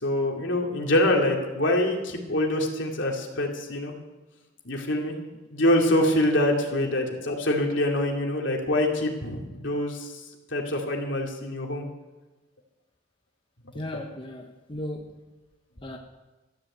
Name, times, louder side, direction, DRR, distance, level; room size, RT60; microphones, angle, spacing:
voice 1, 0.0-3.9 4.6-5.1 5.5-10.2 10.5-11.8, left 1 dB, 70° left, 1 dB, 2.8 m, -25 dB
voice 2, 13.7-15.2 15.8-16.0, left 1 dB, 25° left, 2 dB, 1.0 m, -36 dB
14.0 x 10.5 x 8.1 m, 1.2 s
head